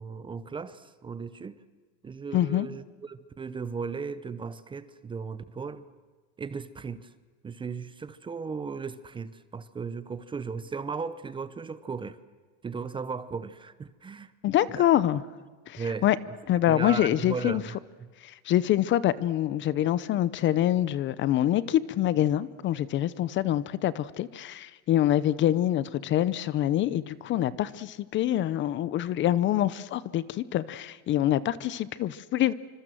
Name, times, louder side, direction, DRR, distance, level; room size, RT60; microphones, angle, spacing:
voice 1, 0.0-1.6 2.0-5.9 6.4-7.1 7.4-12.2 12.6-14.3 14.8-14.9 15.8-16.1 16.7-17.8, right 5 dB, 15° right, 15 dB, 0.7 m, -36 dB
voice 2, 2.3-2.7 14.4-15.2 15.7-16.2 16.5-17.6 18.2-32.5, left 12 dB, 30° left, 18 dB, 0.7 m, -25 dB
26.5 x 25.5 x 7.7 m, 1.5 s
supercardioid pair, 150°, 37 cm